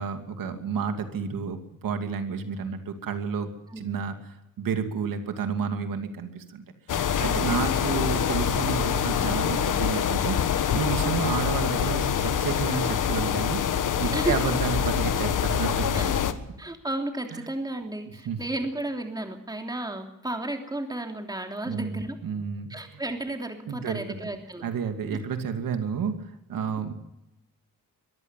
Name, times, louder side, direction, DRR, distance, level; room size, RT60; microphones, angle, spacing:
voice 1, 0.0-1.6 1.8-4.2 4.6-6.6 7.2-13.6 14.0-16.1 18.3-18.4 21.7-22.7 23.7-24.3 24.6-26.9, right 6 dB, 85° right, 6 dB, 2.6 m, -30 dB
sound 1, 6.9-16.3, left 8 dB, 65° left, 1.5 m, -25 dB
voice 2, 7.2-7.6 14.1-14.5 15.9-16.1 16.6-22.2 22.7-24.6 25.1-25.3, right 1 dB, 10° right, 4 dB, 3.1 m, -33 dB
23.5 x 14.5 x 7.6 m, 0.90 s
cardioid pair, 120°, 33 cm